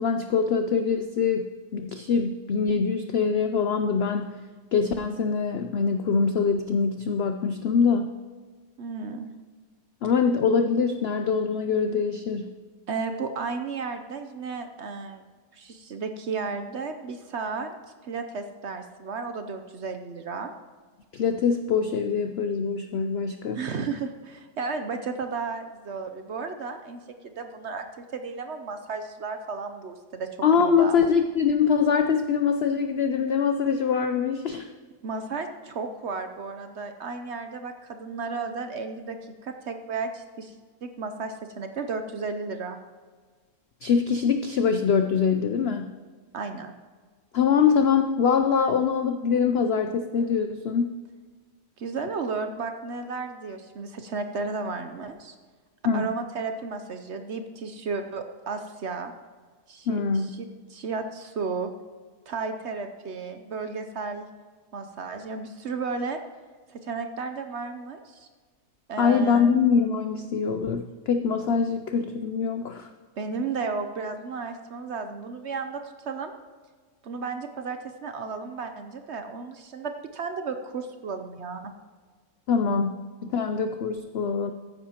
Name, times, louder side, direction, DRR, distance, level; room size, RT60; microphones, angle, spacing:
voice 1, 0.0-4.3 4.7-8.1 10.0-12.5 21.1-23.7 30.4-34.7 43.8-45.9 47.3-50.9 55.8-56.1 59.9-60.3 69.0-72.9 82.5-84.5, left 6 dB, 85° left, 7 dB, 0.5 m, -24 dB
voice 2, 8.8-9.3 12.9-15.2 15.5-17.8 18.0-20.5 23.5-30.3 30.6-31.0 35.0-40.5 40.8-42.8 46.3-46.7 51.8-55.3 55.9-59.1 59.7-61.7 62.3-64.3 64.7-66.2 66.7-68.3 68.9-69.5 73.2-76.3 77.0-81.6, right 4 dB, 60° right, 7 dB, 0.8 m, -33 dB
14.0 x 9.8 x 2.9 m, 1.5 s
omnidirectional pair, 1.7 m